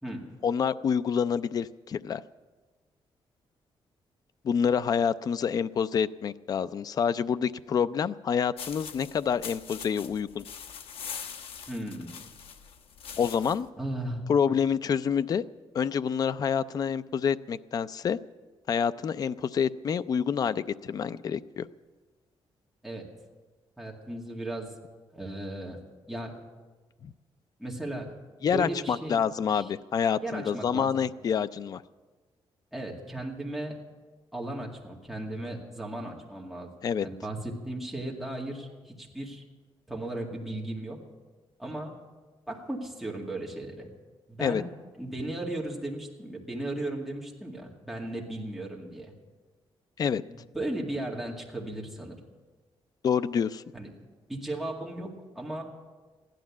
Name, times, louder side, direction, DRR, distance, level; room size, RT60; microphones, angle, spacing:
voice 1, 0.4-2.2 4.4-10.4 13.2-13.7 14.3-15.4 15.7-18.2 18.7-21.7 27.0-27.1 28.4-31.8 36.8-37.1 44.4-44.6 50.0-50.2 53.0-53.6, left 7 dB, 40° left, 14 dB, 0.4 m, -27 dB
sound 1, 8.6-13.7, left 7 dB, 70° left, 0.9 m, -42 dB
voice 2, 11.7-12.2 13.8-14.3 22.8-23.1 23.8-24.7 25.1-25.8 26.1-26.4 27.6-28.2 28.5-29.2 29.5-29.7 30.2-31.0 32.7-33.8 34.3-36.7 37.0-39.4 39.9-41.0 41.6-42.0 42.5-43.9 44.3-44.7 45.0-49.1 50.3-52.2 53.7-55.6, right 1 dB, ahead, -2 dB, 2.1 m, -36 dB
15.5 x 11.5 x 7.2 m, 1.3 s
wide cardioid pair, 175°, 10 cm